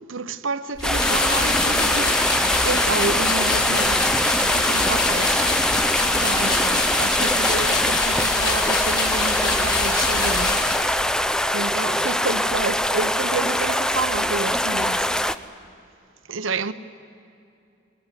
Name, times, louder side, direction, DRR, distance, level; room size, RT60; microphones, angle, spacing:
voice 1, 0.1-4.1 4.4-5.6 6.1-10.6 10.9-15.2 16.3-16.7, right 3 dB, 80° right, 0.9 m, -30 dB
sound 1, 0.8-11.2, left 3 dB, 20° left, 3.2 m, -25 dB
sound 2, 0.8-15.4, left 1 dB, 5° left, 0.5 m, -23 dB
23.5 x 20.5 x 9.9 m
head